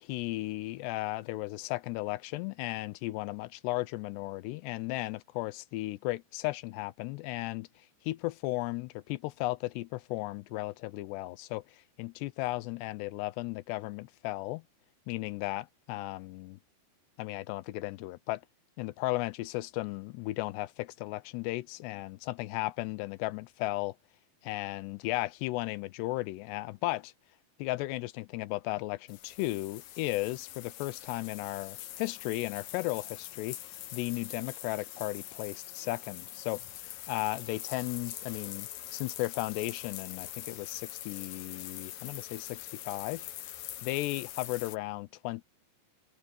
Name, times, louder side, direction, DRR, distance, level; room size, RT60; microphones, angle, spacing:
voice 1, 0.0-7.7 8.0-14.6 15.1-16.6 17.2-18.4 18.8-24.0 24.4-27.1 27.6-33.6 33.9-36.6 37.1-43.3 43.8-45.4, left 19 dB, 85° left, 2.8 m, -35 dB
sound 1, 29.1-44.8, left 13 dB, 70° left, 2.5 m, -44 dB
omnidirectional pair, 4.9 m